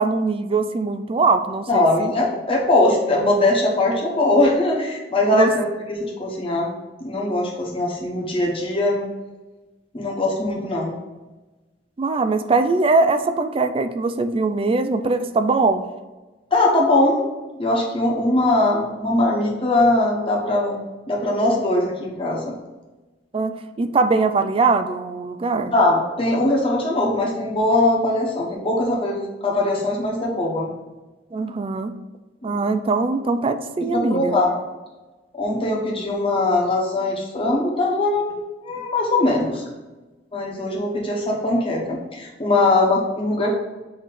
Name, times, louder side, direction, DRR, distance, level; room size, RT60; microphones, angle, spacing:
voice 1, 0.0-2.1 5.3-5.5 12.0-15.9 23.3-25.7 31.3-31.9 32.4-34.4, right 3 dB, 30° right, 10 dB, 0.4 m, -21 dB
voice 2, 1.7-6.7 7.0-9.1 9.9-10.9 16.5-17.2 17.6-20.8 21.1-22.6 25.7-30.7 32.4-32.6 33.9-34.6 35.3-39.6 40.3-43.5, left 2 dB, 30° left, -3 dB, 1.3 m, -21 dB
7.1 x 3.2 x 4.2 m, 1.2 s
head